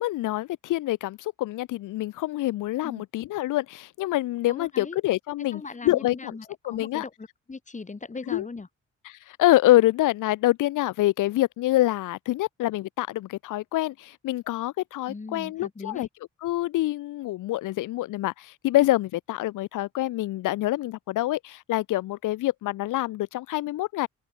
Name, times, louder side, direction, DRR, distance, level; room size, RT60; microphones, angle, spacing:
voice 1, 0.0-6.3 6.6-7.0 8.3-8.5 9.0-16.1 16.4-24.1, left 16 dB, 85° left, 0.7 m, -26 dB
voice 2, 4.5-5.0 5.5-8.7 15.1-16.1, left 4 dB, 25° left, 2.1 m, -39 dB
open air
cardioid pair, 75°, 30 cm